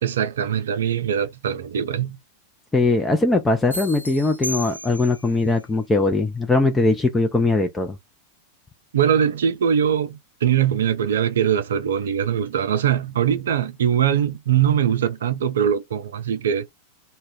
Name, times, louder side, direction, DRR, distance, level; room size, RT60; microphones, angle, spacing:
voice 1, 0.0-2.2 8.9-16.7, right 9 dB, 65° right, 0.4 m, -22 dB
voice 2, 2.7-8.0, left 3 dB, 10° left, 0.4 m, -20 dB
sound 1, 3.7-5.4, equal, 85° left, 0.6 m, -34 dB
2.1 x 2.1 x 3.6 m
figure-of-eight pair, 90°, 0 cm